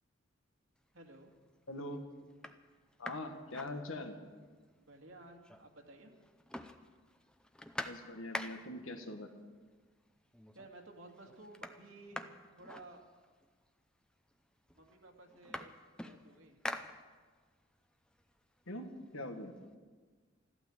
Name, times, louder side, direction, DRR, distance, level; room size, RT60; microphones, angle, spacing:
sound 1, 0.9-1.4 1.9-2.0 2.3-4.4 4.7-4.8 5.0-5.9 6.2-8.9 9.8-9.9 10.3-10.8 11.1-13.5 14.3-14.4 14.7-17.5 17.9-19.6, left 1 dB, 5° left, 0.6 m, -46 dB
voice 1, 0.9-1.3 4.8-6.1 10.5-13.0 14.7-15.7 16.0-16.6, right 2 dB, 75° right, 2 dB, 2.2 m, -55 dB
voice 2, 1.7-2.0 3.0-4.1 7.8-9.3 18.7-18.9 19.1-19.5, left 1 dB, 90° left, 5 dB, 1.7 m, -42 dB
14.5 x 12.0 x 7.3 m, 1.5 s
head